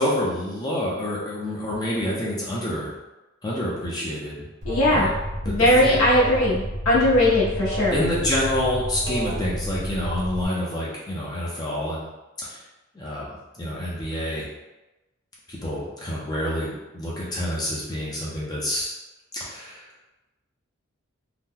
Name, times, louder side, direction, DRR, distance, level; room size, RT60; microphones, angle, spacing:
voice 1, 0.0-2.9 3.4-4.5 4.9-5.1 5.5-6.0 7.9-12.1 12.4-12.6 12.9-14.5 15.5-18.9 19.4-19.8, left 1 dB, 20° left, -6 dB, 0.5 m, -27 dB
voice 2, 4.6-5.1 5.4-8.0, left 1 dB, 80° left, -6 dB, 0.7 m, -19 dB
Alarm, 4.6-10.4, equal, 55° right, 1.0 m, -30 dB
2.8 x 2.1 x 3.6 m, 1.0 s
head